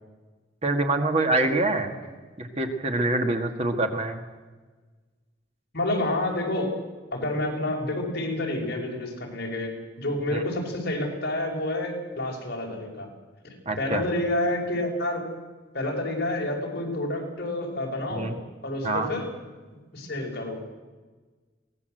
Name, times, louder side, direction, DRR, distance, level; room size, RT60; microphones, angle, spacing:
voice 1, 0.6-1.9 2.4-4.2 10.3-10.4 13.7-14.0 18.1-18.3 18.8-19.1, right 2 dB, 35° right, 5 dB, 1.9 m, -25 dB
voice 2, 5.7-6.7 7.1-13.1 13.4-15.3 15.7-18.3 18.6-19.3 19.9-20.6, left 1 dB, 55° left, -1 dB, 5.8 m, -29 dB
23.0 x 18.5 x 7.9 m, 1.3 s
head